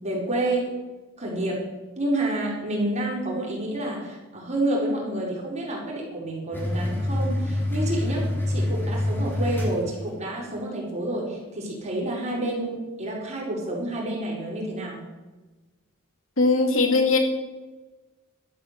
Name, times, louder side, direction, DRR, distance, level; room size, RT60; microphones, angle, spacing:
voice 1, 0.0-0.7 1.2-1.7 2.0-15.0, right 1 dB, 35° right, -3 dB, 4.9 m, -29 dB
sound 1, 6.5-10.4, left 1 dB, 10° left, 4.1 m, -26 dB
voice 2, 16.4-17.2, left 3 dB, 75° left, 3 dB, 2.8 m, -20 dB
13.0 x 11.5 x 6.8 m, 1.2 s
head